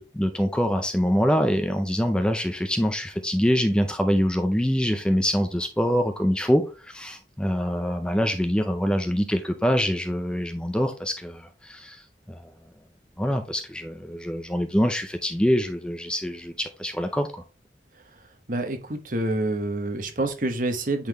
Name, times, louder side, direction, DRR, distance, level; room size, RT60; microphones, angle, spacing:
voice 1, 0.0-12.0 12.3-12.4 13.2-17.4, equal, 5° left, 0.4 m, -25 dB
voice 2, 18.5-21.1, right 2 dB, 50° right, 1.0 m, -27 dB
8.5 x 3.9 x 2.9 m
head